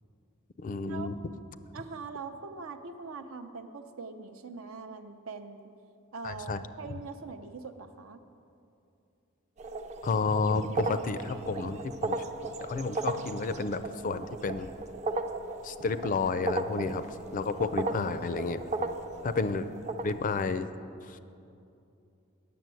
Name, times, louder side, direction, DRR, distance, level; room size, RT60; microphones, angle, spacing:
voice 1, 0.6-1.2 6.2-6.6 10.0-14.7 15.6-17.1 17.3-18.6 19.2-19.7 20.0-20.7 21.0-21.2, left 4 dB, 40° left, 12 dB, 0.4 m, -31 dB
voice 2, 1.7-5.7 6.1-8.2, right 4 dB, 75° right, 8 dB, 0.6 m, -42 dB
sound 1, 9.6-20.5, right 3 dB, 35° right, 0.5 m, -36 dB
9.3 x 7.0 x 7.6 m, 2.7 s
head